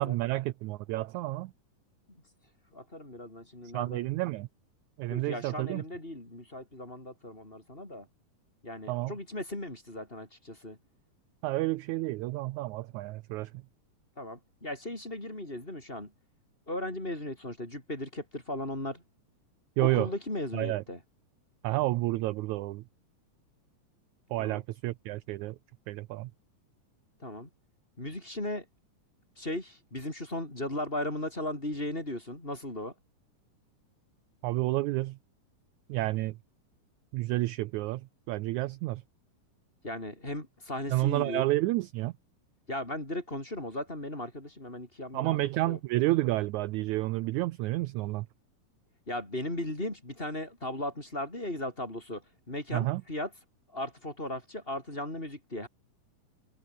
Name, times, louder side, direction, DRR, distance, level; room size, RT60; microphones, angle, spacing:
voice 1, 0.0-1.5 3.7-4.5 5.0-5.8 8.9-9.1 11.4-13.6 19.8-20.1 20.5-20.8 21.6-22.8 24.3-25.6 25.9-26.3 34.4-35.2 35.9-36.4 37.1-39.0 40.9-42.1 45.1-48.3 52.7-53.0, right 18 dB, 80° right, 1.8 m, -30 dB
voice 2, 2.7-4.1 5.1-8.1 8.6-10.8 14.2-16.1 16.7-19.0 19.8-21.0 24.4-24.6 27.2-27.5 28.0-28.7 29.4-32.9 39.8-41.4 42.7-45.4 45.6-45.8 49.1-52.2 52.5-53.3 53.7-55.7, left 1 dB, 15° left, 5.3 m, -37 dB
omnidirectional pair, 3.9 m